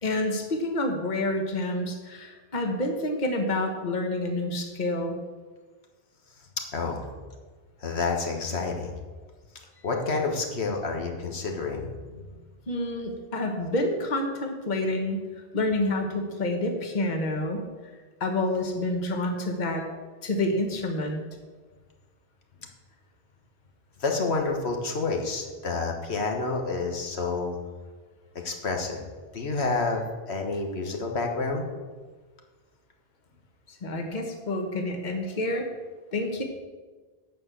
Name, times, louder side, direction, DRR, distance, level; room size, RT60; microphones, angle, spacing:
voice 1, 0.0-5.2 12.7-15.3 15.5-17.7 18.2-19.8 20.2-21.2 33.7-35.7 36.1-36.4, left 1 dB, 45° left, 3 dB, 1.3 m, -28 dB
voice 2, 6.7-7.1 7.8-8.9 9.8-12.3 24.0-27.6 28.3-29.0 29.3-31.6, left 3 dB, 90° left, 2 dB, 1.7 m, -29 dB
12.0 x 4.7 x 8.2 m, 1.3 s
omnidirectional pair, 1.1 m